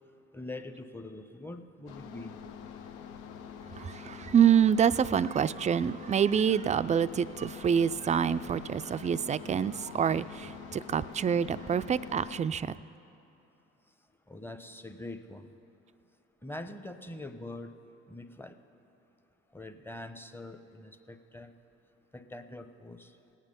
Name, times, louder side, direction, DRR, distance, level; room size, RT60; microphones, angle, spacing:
voice 1, 0.3-2.3 14.3-15.5 16.4-17.7 18.1-18.6 19.5-21.5 22.1-23.1, left 2 dB, 5° left, 0.8 m, -43 dB
sound 1, 1.9-12.4, left 7 dB, 90° left, 0.8 m, -46 dB
voice 2, 3.8-12.8, right 8 dB, 25° right, 0.3 m, -27 dB
18.5 x 8.9 x 5.3 m
supercardioid pair, 80°, 30 cm